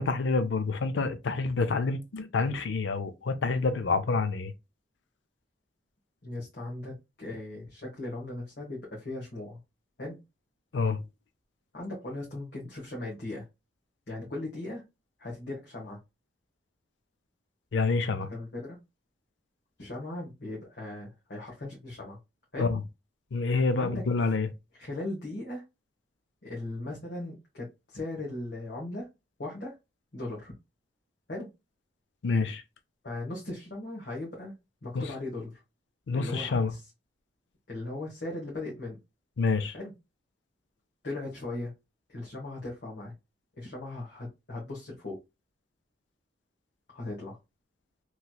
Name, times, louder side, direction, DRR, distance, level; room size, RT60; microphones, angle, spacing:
voice 1, 0.0-4.5 10.7-11.0 17.7-18.3 22.6-22.8 23.3-24.5 32.2-32.6 36.1-36.7 39.4-39.7, left 4 dB, 80° left, 0.5 m, -27 dB
voice 2, 6.2-9.6 10.0-10.2 11.7-13.4 14.1-14.8 15.2-16.0 18.3-18.8 19.8-22.2 22.5-22.7 23.8-24.3 24.8-25.6 26.4-29.1 29.4-29.7 30.1-30.5 31.3-31.5 33.0-34.5 34.8-35.6 36.1-36.8 37.7-39.0 39.7-39.9 41.0-41.7 42.1-43.1 43.6-45.2 46.9-47.4, left 2 dB, 60° left, 1.1 m, -38 dB
3.1 x 2.8 x 2.3 m
head